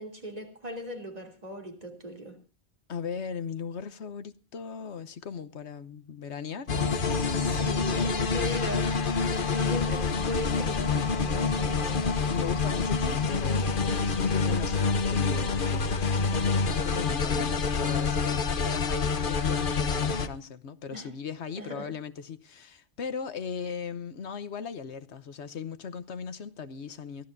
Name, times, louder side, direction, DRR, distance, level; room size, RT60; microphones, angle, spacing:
voice 1, 0.0-2.4 7.5-12.1 20.9-21.1 21.6-21.9, left 1 dB, 35° right, 3.1 m, -38 dB
voice 2, 2.9-8.2 12.3-27.2, left 6 dB, 85° left, 1.3 m, -38 dB
sound 1, 6.7-20.3, left 4 dB, 55° left, 1.2 m, -27 dB
23.5 x 15.5 x 2.6 m
omnidirectional pair, 1.1 m